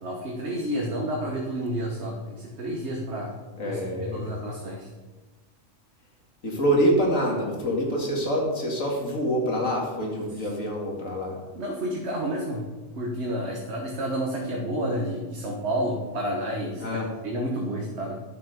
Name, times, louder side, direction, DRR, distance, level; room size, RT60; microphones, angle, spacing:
voice 1, 0.0-3.3 3.6-4.9 11.6-12.6 13.0-18.2, right 1 dB, 55° right, -1 dB, 1.6 m, -30 dB
voice 2, 3.6-4.3 6.4-11.4 16.8-17.1, equal, 75° left, -1 dB, 2.6 m, -26 dB
12.0 x 7.2 x 5.2 m, 1.2 s
omnidirectional pair, 1.4 m